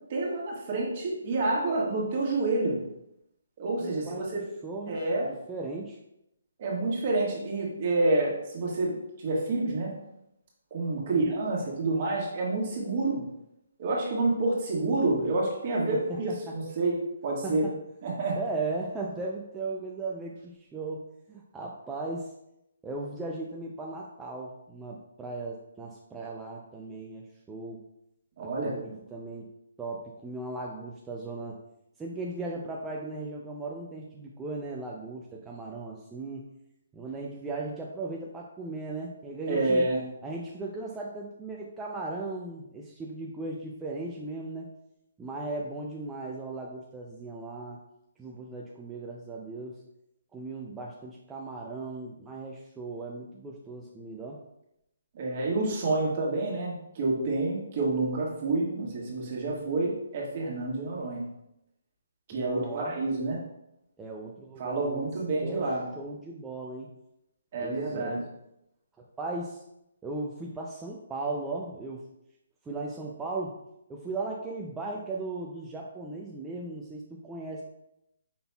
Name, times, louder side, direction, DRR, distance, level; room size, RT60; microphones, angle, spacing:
voice 1, 0.1-2.8 3.6-4.4 4.9-5.3 6.6-9.9 10.7-13.2 13.8-16.9 17.2-17.6 18.0-18.4 28.4-28.7 39.5-40.0 55.1-61.2 62.3-63.4 64.6-65.8 67.5-68.2, right 2 dB, 40° right, -3 dB, 1.6 m, -28 dB
voice 2, 3.8-5.0 5.3-6.0 11.0-11.3 15.9-16.6 17.4-17.8 18.3-22.3 22.8-27.8 28.4-29.5 29.8-31.6 32.0-36.4 36.9-39.9 40.2-44.7 45.2-47.8 48.2-49.8 50.3-54.4 62.3-63.0 64.0-65.1 65.4-65.7 66.0-66.9 67.6-68.2 69.0-69.6 70.0-72.0 72.6-73.6 73.9-77.6, right 3 dB, 10° right, -3 dB, 0.4 m, -37 dB
5.3 x 3.9 x 2.3 m, 0.83 s
hypercardioid pair, 150°, 0 cm